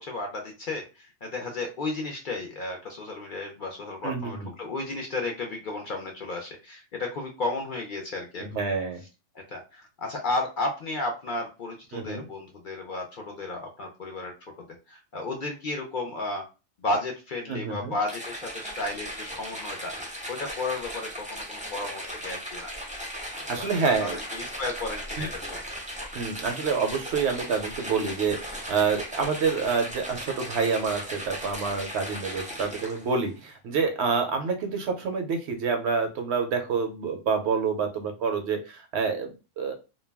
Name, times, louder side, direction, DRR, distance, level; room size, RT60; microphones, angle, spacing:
voice 1, 0.0-8.5 9.3-16.4 16.8-19.9 20.3-22.7 23.4-25.6, left 2 dB, 55° left, 2 dB, 0.6 m, -33 dB
voice 2, 4.0-4.5 8.4-9.0 11.9-12.2 17.5-17.9 23.5-24.2 25.2-25.3 26.1-39.7, right 5 dB, 70° right, 5 dB, 0.8 m, -27 dB
sound 1, 18.1-33.2, equal, 10° right, 0.5 m, -37 dB
2.2 x 2.1 x 3.3 m, 0.30 s
omnidirectional pair, 1.2 m